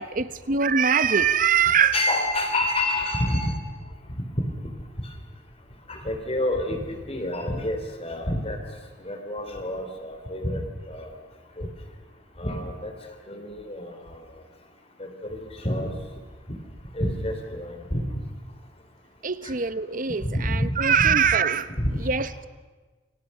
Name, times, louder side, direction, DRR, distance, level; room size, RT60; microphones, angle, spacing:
voice 1, 0.0-2.0 19.2-21.7 22.0-22.5, right 7 dB, 45° right, 13 dB, 1.0 m, -22 dB
voice 2, 1.9-3.6 5.9-8.6 9.0-11.1 11.6-11.7 12.4-12.9 13.3-14.0 15.0-15.9 16.9-18.0 19.4-19.6 20.2-20.7 21.8-21.9, left 1 dB, 30° left, 5 dB, 3.4 m, -28 dB
28.5 x 26.0 x 5.6 m, 1.3 s
head